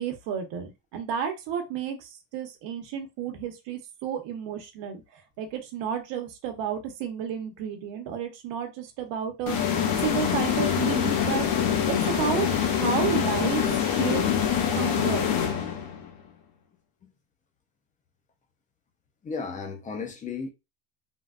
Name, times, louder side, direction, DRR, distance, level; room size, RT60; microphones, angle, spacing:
voice 1, 0.0-9.6 10.0-11.5 11.9-14.3 14.7-15.2, right 8 dB, 60° right, 0.9 m, -32 dB
sound 1, 9.5-16.1, left 8 dB, 45° left, 0.7 m, -25 dB
voice 2, 19.2-20.5, left 5 dB, 20° left, 0.3 m, -34 dB
3.4 x 2.2 x 2.3 m
cardioid pair, 130°, 49 cm